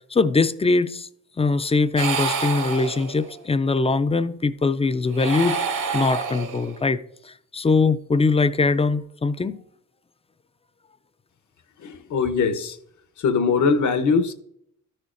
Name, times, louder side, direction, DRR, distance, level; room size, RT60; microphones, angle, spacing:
voice 1, 0.1-1.1 1.4-5.6 5.9-9.6, left 3 dB, 20° left, 0.3 m, -22 dB
sound 1, 2.0-3.4 5.0-6.9, right 5 dB, 65° right, 1.1 m, -28 dB
voice 2, 11.8-12.8 13.2-14.3, left 5 dB, 65° left, 0.9 m, -21 dB
13.0 x 6.5 x 2.5 m
cardioid pair, 105°, 32 cm